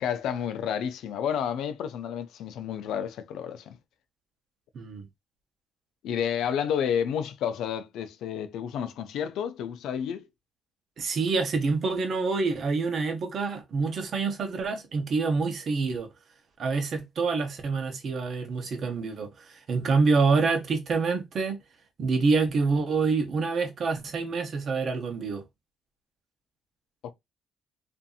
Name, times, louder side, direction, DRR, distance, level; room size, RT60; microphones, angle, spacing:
voice 1, 0.0-3.8 6.0-10.3 27.0-27.1, left 8 dB, 85° left, 0.4 m, -30 dB
voice 2, 4.7-5.1 11.0-16.1 16.6-19.3 19.7-21.6 22.0-25.4, right 4 dB, 55° right, 0.9 m, -26 dB
2.7 x 2.6 x 2.3 m
cardioid pair, 90°, 0 cm